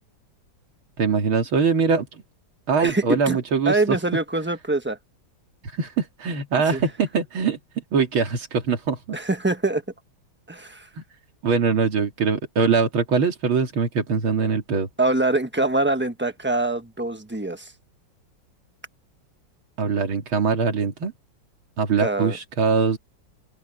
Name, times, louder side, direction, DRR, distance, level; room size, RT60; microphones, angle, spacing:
voice 1, 1.0-2.2 2.7-4.0 5.7-7.6 7.9-9.2 11.4-14.9 19.8-21.1 21.8-23.0, right 5 dB, 85° right, 3.0 m, -22 dB
voice 2, 2.8-3.4 3.6-5.0 6.7-6.8 9.1-9.8 10.5-10.9 15.0-17.7 22.0-22.4, right 2 dB, 10° right, 0.8 m, -24 dB
omnidirectional pair, 2.2 m